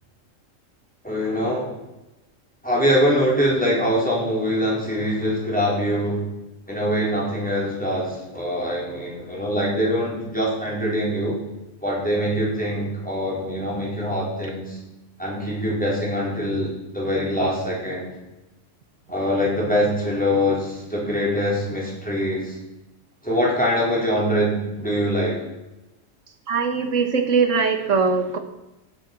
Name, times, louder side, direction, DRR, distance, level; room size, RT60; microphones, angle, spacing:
voice 1, 1.0-1.7 2.6-6.2 6.7-11.3 11.8-14.8 15.2-18.1 19.1-22.5 23.2-25.4, equal, 5° left, -5 dB, 4.4 m, -23 dB
voice 2, 26.5-28.4, right 5 dB, 70° right, 7 dB, 1.7 m, -21 dB
15.5 x 7.9 x 6.1 m, 0.99 s
omnidirectional pair, 1.4 m